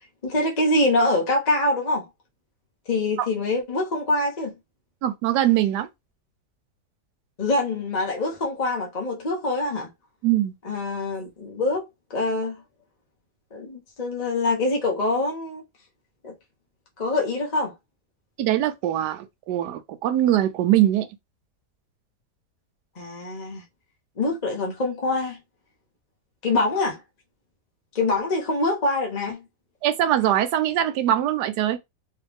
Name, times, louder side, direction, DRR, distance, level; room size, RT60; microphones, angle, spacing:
voice 1, 0.2-2.0 2.9-4.5 7.4-9.9 10.6-11.8 12.1-12.6 13.5-15.6 16.2-16.3 17.0-17.7 23.0-23.6 24.2-25.4 26.4-27.0 27.9-29.4, left 2 dB, 30° left, 1.0 m, -24 dB
voice 2, 5.0-5.9 10.2-10.5 18.4-21.1 29.8-31.8, right 12 dB, 75° right, 1.2 m, -22 dB
3.3 x 3.0 x 3.4 m
omnidirectional pair, 1.8 m